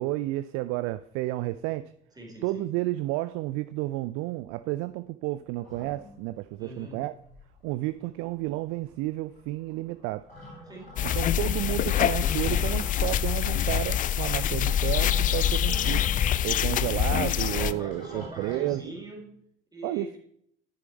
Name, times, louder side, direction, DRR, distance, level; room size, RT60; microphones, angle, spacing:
voice 1, 0.0-1.9 2.4-7.1 7.6-10.3 11.2-16.0 16.4-18.9 19.8-20.1, right 17 dB, 50° right, 0.4 m, -31 dB
voice 2, 2.2-2.7 6.6-7.1 10.7-11.4 15.7-15.9 16.6-16.9 17.4-19.3 19.7-20.2, right 1 dB, 15° right, 3.5 m, -43 dB
sound 1, 5.6-6.5 7.0-7.1 7.2-7.9 8.1-18.7, equal, 90° left, 3.0 m, -44 dB
sound 2, 11.0-17.7, left 11 dB, 30° left, 0.4 m, -25 dB
10.5 x 6.5 x 4.3 m
figure-of-eight pair, 55°, 30 cm